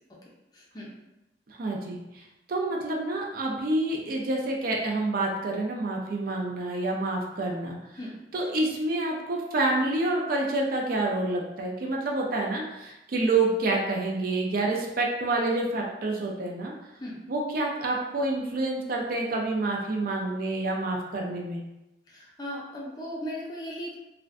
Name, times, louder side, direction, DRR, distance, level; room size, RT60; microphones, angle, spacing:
voice 1, 0.5-0.9 8.0-8.1 17.0-17.1 22.1-23.9, equal, 25° left, -5 dB, 0.5 m, -37 dB
voice 2, 1.5-7.8 8.3-16.7 17.3-21.6, right 2 dB, 55° right, -1 dB, 0.4 m, -28 dB
2.4 x 2.1 x 2.5 m, 0.95 s
head